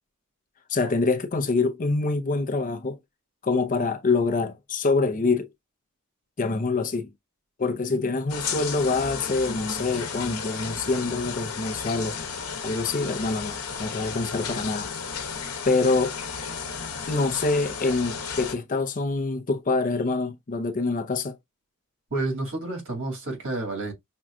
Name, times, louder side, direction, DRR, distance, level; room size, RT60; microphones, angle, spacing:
voice 1, 0.7-3.0 3.4-5.5 6.4-7.1 7.6-12.2 12.6-14.9 15.6-16.2 17.1-21.4, left 3 dB, 40° left, 0.5 m, -25 dB
sound 1, 8.3-18.6, left 6 dB, 85° left, 0.9 m, -33 dB
voice 2, 22.1-23.9, right 2 dB, 60° right, 2.3 m, -30 dB
6.0 x 2.3 x 2.5 m
head